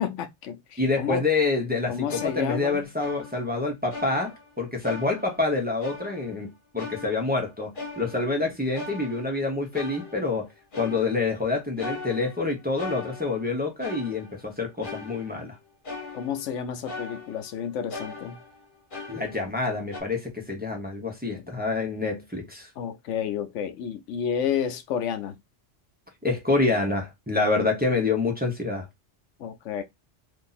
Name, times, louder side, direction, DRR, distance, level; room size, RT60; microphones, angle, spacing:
voice 1, 0.0-1.2 1.9-2.9 8.4-8.5 16.1-18.4 21.3-21.4 22.8-25.3 29.4-29.8, left 8 dB, 90° left, 1.0 m, -30 dB
voice 2, 0.8-10.5 10.8-15.6 19.1-22.7 26.2-28.9, left 3 dB, 10° right, 0.8 m, -27 dB
sound 1, 2.1-3.6 3.9-4.6 4.8-5.5 5.8-6.4 6.8-8.4 8.7-9.5 9.7-10.4 10.7-11.4 11.8-13.5 13.8-14.5 14.8-15.5 15.8-16.6 16.9-17.6 17.9-19.6 19.9-20.0, left 3 dB, 45° left, 1.3 m, -40 dB
2.8 x 2.7 x 4.0 m
omnidirectional pair, 1.2 m